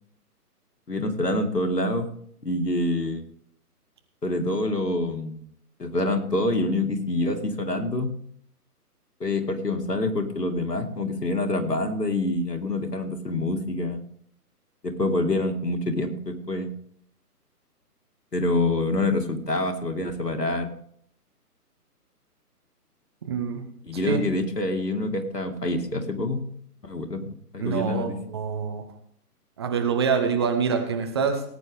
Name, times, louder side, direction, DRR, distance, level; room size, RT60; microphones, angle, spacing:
voice 1, 0.9-2.1 2.4-3.2 4.2-5.4 5.8-8.1 9.2-14.0 14.8-16.7 18.3-20.7 23.8-26.4 26.8-27.2 27.5-28.2, left 2 dB, 85° left, 6 dB, 2.1 m, -26 dB
voice 2, 23.2-23.6 24.0-24.2 27.6-28.8 29.6-31.4, right 6 dB, 15° right, 5 dB, 0.8 m, -25 dB
18.5 x 9.3 x 3.6 m, 0.66 s
figure-of-eight pair, 135°, 47 cm